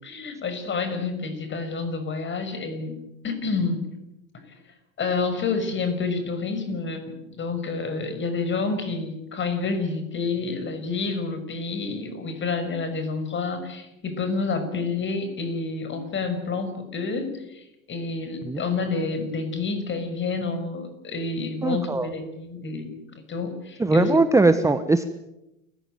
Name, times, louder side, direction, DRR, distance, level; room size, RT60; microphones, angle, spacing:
voice 1, 0.0-3.9 5.0-22.9 23.3-24.1, left 4 dB, 30° left, 9 dB, 6.1 m, -29 dB
voice 2, 21.6-22.1 23.8-25.0, right 3 dB, 5° right, 10 dB, 1.2 m, -20 dB
29.0 x 15.5 x 9.2 m, 0.92 s
hypercardioid pair, 100°, 41 cm